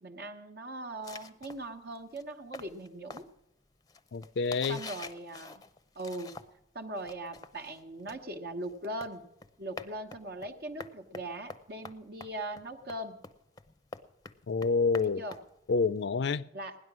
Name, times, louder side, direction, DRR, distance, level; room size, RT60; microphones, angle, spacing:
voice 1, 0.0-3.2 4.7-5.6 5.9-6.3 6.7-9.2 9.6-13.2 15.0-15.4 16.5-16.8, right 1 dB, 55° right, 1.1 m, -40 dB
sound 1, 1.0-6.7 7.0-16.0, left 3 dB, 20° left, 0.6 m, -48 dB
voice 2, 4.1-4.8 14.5-15.2 15.7-16.5, left 4 dB, 60° left, 0.4 m, -28 dB
16.5 x 11.0 x 6.1 m
head